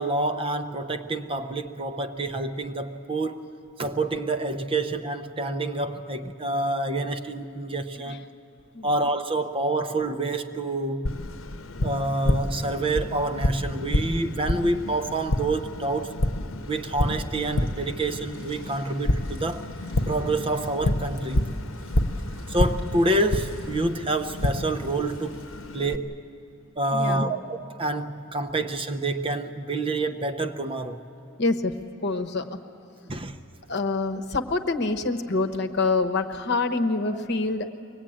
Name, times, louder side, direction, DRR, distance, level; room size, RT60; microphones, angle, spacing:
voice 1, 0.0-3.5 3.8-8.2 8.8-11.1 11.8-16.2 16.7-19.7 20.1-21.5 22.5-25.4 25.7-26.1 26.8-31.0 33.1-33.4 37.1-37.2, right 2 dB, 25° right, 0.7 m, -27 dB
Tap, 11.1-26.0, left 1 dB, 70° left, 0.9 m, -29 dB
sound 1, 16.5-25.7, right 1 dB, 75° right, 7.5 m, -52 dB
voice 2, 26.9-27.3 31.4-31.7 32.0-32.5 33.7-37.7, left 3 dB, 55° left, 1.1 m, -26 dB
23.5 x 19.0 x 8.8 m
head